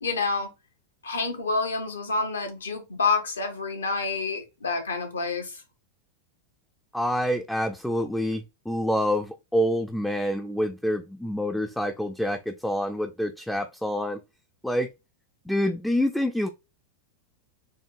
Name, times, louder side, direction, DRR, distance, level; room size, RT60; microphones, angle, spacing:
voice 1, 0.0-0.5 1.0-5.6, left 4 dB, 70° left, 1.3 m, -28 dB
voice 2, 6.9-14.2 14.6-14.9 15.5-16.5, equal, 5° left, 0.5 m, -27 dB
6.3 x 3.0 x 2.6 m
figure-of-eight pair, 90°, 0 cm